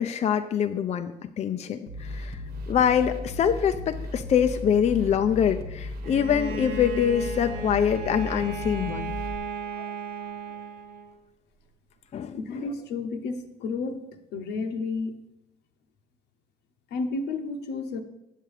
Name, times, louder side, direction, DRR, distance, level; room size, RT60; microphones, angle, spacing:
voice 1, 0.0-2.4 2.7-9.1 9.8-9.9 12.1-12.7, left 8 dB, 40° left, 8 dB, 0.5 m, -25 dB
sound 1, 1.9-9.4, left 2 dB, 65° right, 1.3 m, -36 dB
Bowed string instrument, 6.0-11.2, right 3 dB, 90° right, 1.2 m, -36 dB
voice 2, 12.3-15.2 16.9-18.0, left 3 dB, 80° left, 7 dB, 1.0 m, -32 dB
8.9 x 7.5 x 4.8 m, 0.90 s
cardioid pair, 110°, 17 cm